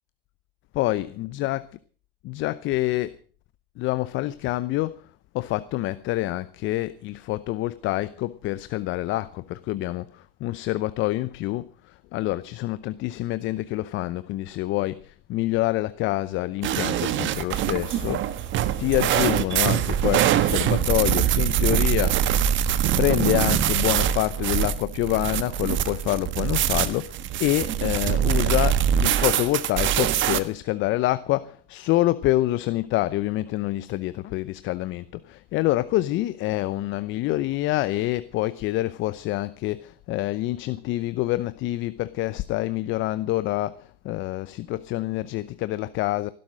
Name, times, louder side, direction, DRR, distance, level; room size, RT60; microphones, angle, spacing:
voice 1, 0.7-1.8 2.2-3.2 3.8-5.1 5.3-18.5 18.8-22.2 23.0-46.3, left 16 dB, 40° left, 0.8 m, -27 dB
sound 1, 16.6-30.4, right 10 dB, 40° right, 1.5 m, -23 dB
16.0 x 12.0 x 6.4 m
hypercardioid pair, 100°, 29 cm